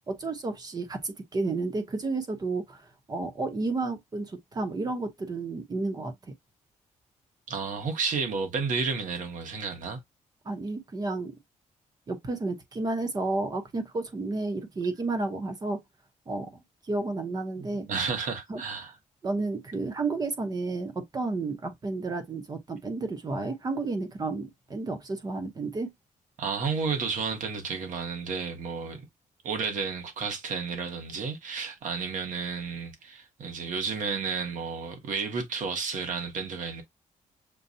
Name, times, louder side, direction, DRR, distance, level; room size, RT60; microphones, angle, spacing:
voice 1, 0.1-2.8 3.1-6.1 10.4-11.4 12.1-15.8 16.3-16.5 16.9-17.9 18.5-18.6 19.2-25.9, right 3 dB, 30° right, 1.0 m, -31 dB
voice 2, 7.5-10.0 17.6-19.0 26.4-29.0 29.4-36.8, right 5 dB, 70° right, 1.4 m, -32 dB
6.8 x 2.4 x 2.7 m
wide cardioid pair, 155°, 13 cm